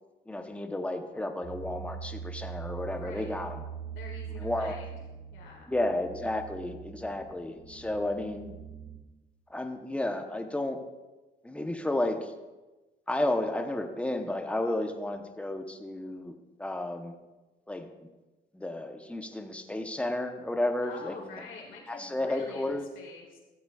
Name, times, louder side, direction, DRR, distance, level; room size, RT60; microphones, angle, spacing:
voice 1, 0.3-3.6 4.4-4.7 5.7-8.6 9.5-10.8 11.4-12.3 13.1-16.3 16.6-17.1 17.7-17.9 18.5-21.4 21.9-22.8, left 1 dB, 5° left, 5 dB, 0.9 m, -32 dB
sound 1, 1.4-9.0, right 7 dB, 75° right, 2.8 m, -42 dB
voice 2, 3.0-3.4 3.9-4.9 5.3-5.7 20.8-23.4, left 4 dB, 80° left, -2 dB, 2.0 m, -46 dB
15.0 x 7.9 x 2.4 m, 1.1 s
cardioid pair, 90°, 20 cm